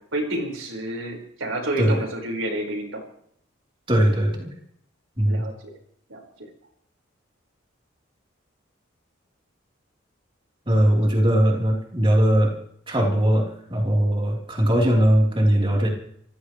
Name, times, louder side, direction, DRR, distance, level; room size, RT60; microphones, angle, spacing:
voice 1, 0.1-3.0 5.2-5.7 6.1-6.2, right 1 dB, 80° right, 1 dB, 5.1 m, -29 dB
voice 2, 3.9-4.5 5.2-5.4 10.7-12.5 12.9-15.9, equal, 25° right, -2 dB, 3.8 m, -20 dB
27.5 x 16.0 x 3.2 m, 0.67 s
head